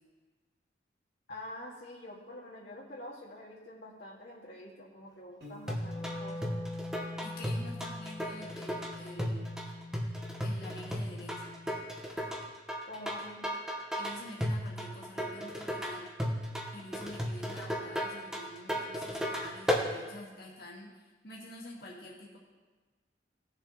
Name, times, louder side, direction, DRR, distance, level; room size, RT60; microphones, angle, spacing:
voice 1, 1.3-6.5 12.9-13.5, left 1 dB, 75° left, -5 dB, 1.9 m, -46 dB
Piano, 5.4-6.4, left 1 dB, 60° right, 2.6 m, -51 dB
Wind instrument woodwind instrument, 5.7-11.9, left 2 dB, 25° left, 0.8 m, -44 dB
sound 1, 5.7-19.9, equal, 5° right, 1.0 m, -35 dB
voice 2, 7.2-9.5 10.4-11.6 14.0-16.1 16.7-22.4, left 1 dB, 60° left, -4 dB, 1.9 m, -47 dB
18.0 x 6.9 x 3.0 m, 1.3 s
head